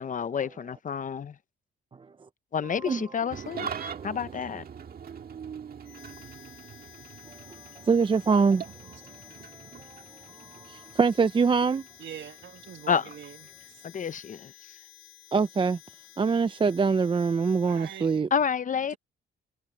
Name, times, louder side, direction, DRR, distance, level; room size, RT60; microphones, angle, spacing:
voice 1, 0.0-1.4 2.5-3.7 4.0-4.6 12.9-13.1 13.8-14.8 18.3-19.0, left 7 dB, 40° left, 0.8 m, -29 dB
Engine starting / Idling, 3.3-13.9, right 7 dB, 50° right, 1.8 m, -43 dB
Harmonica, 5.8-18.3, left 14 dB, 85° left, 6.1 m, -52 dB
voice 2, 7.8-9.0 9.5-10.0 10.4-11.9 15.3-15.8 16.2-18.3, right 5 dB, 25° right, 0.5 m, -25 dB
voice 3, 12.0-13.7 17.7-18.1, right 10 dB, 65° right, 1.9 m, -43 dB
cardioid pair, 90°, 20 cm